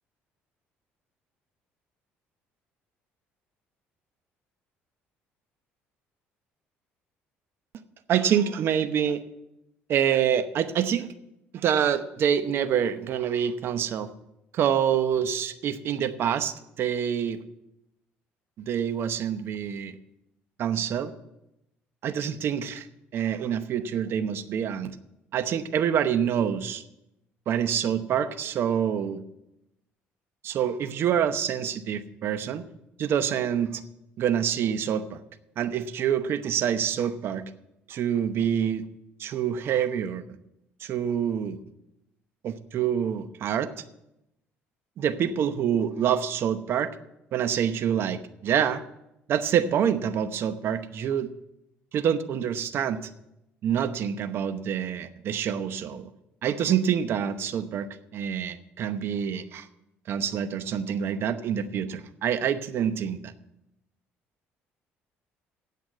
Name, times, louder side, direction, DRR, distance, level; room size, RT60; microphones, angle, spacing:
voice 1, 8.1-9.2 9.9-11.1 11.5-14.1 14.5-17.4 18.6-20.0 20.6-21.1 22.0-22.9 23.1-25.0 25.3-26.8 27.5-29.2 30.4-32.6 33.0-33.8 34.2-35.2 35.6-37.5 37.9-38.8 39.2-40.2 40.8-41.6 42.4-43.7 45.0-46.9 47.3-48.8 49.3-51.3 51.9-53.1 53.6-56.1 56.4-57.9 58.1-59.7 60.1-63.2, right 8 dB, 60° right, 11 dB, 0.9 m, -26 dB
9.3 x 7.8 x 8.4 m, 0.86 s
cardioid pair, 100°, 5 cm